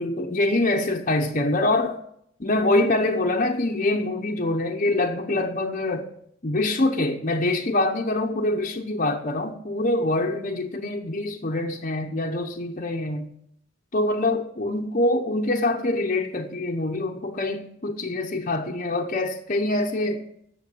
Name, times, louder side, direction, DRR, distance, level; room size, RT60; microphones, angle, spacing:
voice 1, 0.0-2.0 2.4-6.1 6.4-13.3 13.9-20.2, left 2 dB, 40° left, 0.9 m, -25 dB
9.9 x 7.0 x 8.6 m
head